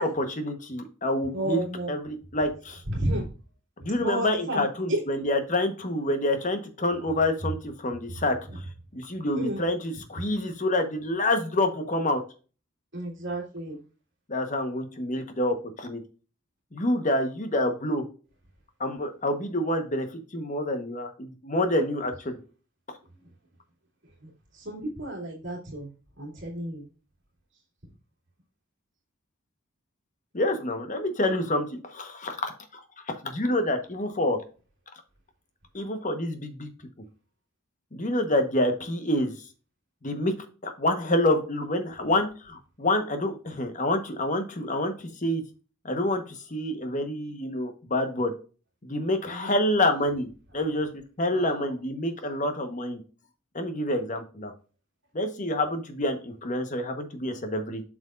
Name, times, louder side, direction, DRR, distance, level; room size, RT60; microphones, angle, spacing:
voice 1, 0.0-2.8 3.8-8.4 8.9-12.2 14.3-16.0 16.7-18.0 18.8-20.1 20.3-22.4 30.3-32.5 33.1-34.4 35.7-36.7 37.9-39.3 40.0-40.3 40.6-45.4 45.8-46.2 46.5-48.3 48.8-50.3 50.5-50.9 51.2-53.0 53.5-54.5 55.1-57.8, left 1 dB, 35° left, 7 dB, 1.1 m, -27 dB
voice 2, 1.3-1.9 2.9-3.2 4.0-5.0 9.4-9.6 12.9-13.8 24.6-25.9 26.2-26.8 49.3-49.6 51.3-51.7, right 1 dB, 60° right, -3 dB, 2.7 m, -31 dB
7.7 x 6.2 x 2.5 m, 0.36 s
head